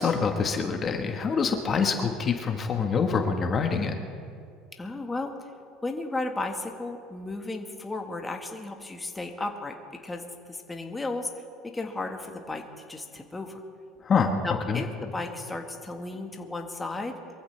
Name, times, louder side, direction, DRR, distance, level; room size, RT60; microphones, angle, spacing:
voice 1, 0.0-3.9 14.0-14.3 14.7-14.8, left 5 dB, 35° left, 4 dB, 1.5 m, -25 dB
voice 2, 4.8-5.3 5.8-9.7 10.0-10.2 10.5-11.4 11.7-13.6 14.4-17.1, left 2 dB, 15° left, 3 dB, 1.6 m, -34 dB
23.5 x 14.5 x 3.4 m, 2.3 s
hypercardioid pair, 85°, 0 cm